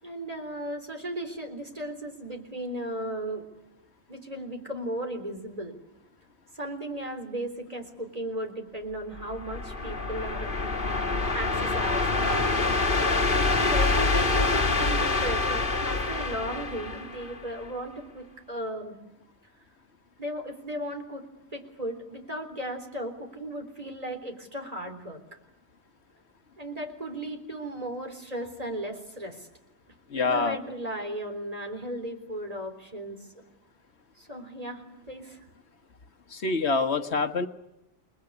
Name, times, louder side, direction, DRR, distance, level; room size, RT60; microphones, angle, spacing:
voice 1, 0.0-3.5 4.1-5.7 6.5-10.5 11.3-12.8 13.6-19.0 20.2-21.3 21.5-25.2 26.6-29.5 30.1-33.2 34.2-35.4, right 1 dB, 35° right, 5 dB, 3.9 m, -36 dB
sound 1, 9.2-17.7, left 3 dB, 50° left, 2.1 m, -26 dB
voice 2, 30.1-30.6 36.3-37.5, left 4 dB, 70° left, 7 dB, 1.5 m, -26 dB
29.0 x 21.0 x 9.7 m, 0.91 s
omnidirectional pair, 1.2 m